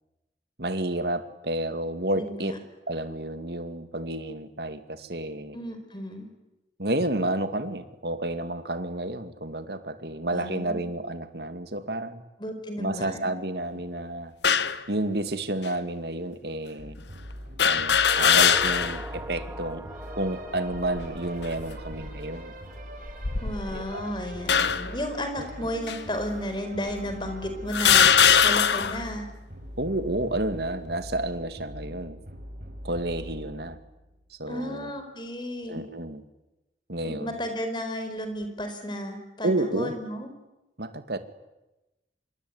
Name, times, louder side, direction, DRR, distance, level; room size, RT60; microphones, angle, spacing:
voice 1, 0.6-2.5 2.9-5.6 6.8-12.2 12.8-14.3 14.9-17.0 17.6-19.8 20.2-22.5 23.7-24.1 25.4-25.7 29.8-32.2 32.8-33.8 34.4-34.9 35.7-36.2 36.9-37.4 39.4-40.0 40.8-41.2, right 1 dB, 65° right, 9 dB, 2.3 m, -30 dB
voice 2, 2.1-2.6 5.5-6.3 10.3-10.9 12.4-13.3 23.4-29.3 34.5-35.8 37.0-40.3, equal, 25° left, 7 dB, 4.6 m, -33 dB
sound 1, 14.4-14.8 15.7-15.8 17.6-19.1 19.5-19.6 20.7-21.2 21.8-22.1 23.1-23.9 24.5-25.0 25.9-26.0 26.9-27.0 27.7-29.0, left 7 dB, 75° left, 1.2 m, -21 dB
sound 2, 16.8-34.4, equal, 50° right, 5.8 m, -42 dB
sound 3, 17.9-26.4 26.7-26.8, right 1 dB, 15° right, 2.2 m, -44 dB
27.0 x 23.0 x 9.7 m, 1.0 s
head